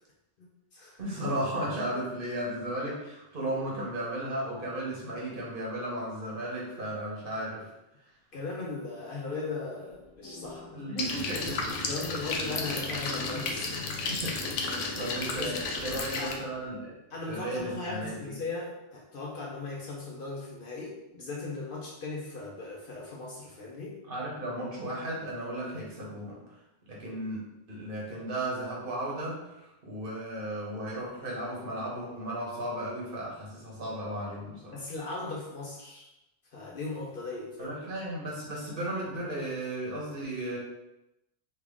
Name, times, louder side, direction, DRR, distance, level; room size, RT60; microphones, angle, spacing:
voice 1, 0.4-1.0 8.3-10.8 11.9-13.8 15.4-15.6 16.2-16.3 17.1-24.0 34.7-36.1 36.5-37.8, left 3 dB, 55° left, -3 dB, 0.7 m, -38 dB
voice 2, 1.0-7.7 10.7-11.9 13.7-16.9 17.3-18.3 24.1-26.4 26.9-34.8 37.6-40.6, right 1 dB, 50° right, -5 dB, 1.1 m, -35 dB
sound 1, 9.9-11.2 11.5-11.6 12.4-13.7 14.7-16.7, left 4 dB, 5° left, 0.7 m, -48 dB
sound 2, 11.0-16.3, left 3 dB, 85° left, 0.9 m, -33 dB
3.4 x 2.4 x 3.5 m, 0.93 s
omnidirectional pair, 1.2 m